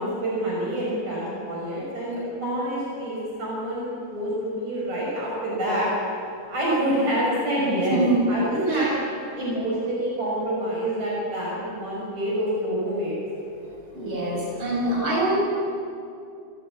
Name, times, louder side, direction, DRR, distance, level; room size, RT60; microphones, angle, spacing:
voice 1, 0.0-5.9 6.4-8.0 8.3-8.9 9.4-13.2, right 1 dB, 55° right, -5 dB, 7.3 m, -27 dB
voice 2, 7.9-8.4 8.7-8.8 13.6-15.4, right 2 dB, 35° right, -4 dB, 7.7 m, -25 dB
28.0 x 17.5 x 8.4 m, 2.5 s
omnidirectional pair, 3.9 m